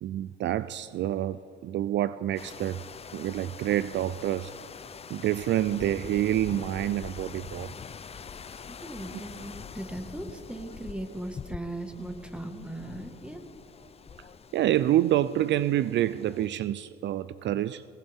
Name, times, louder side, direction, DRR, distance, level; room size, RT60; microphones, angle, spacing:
voice 1, 0.0-2.8 3.1-4.5 5.1-7.7 14.5-17.8, right 12 dB, 65° right, 15 dB, 0.4 m, -27 dB
sound 1, 2.4-16.5, left 6 dB, 30° left, 0.5 m, -44 dB
voice 2, 8.7-13.4, right 1 dB, 5° right, 5 dB, 1.6 m, -38 dB
19.0 x 19.0 x 3.6 m, 2.6 s
cardioid pair, 90°, 20 cm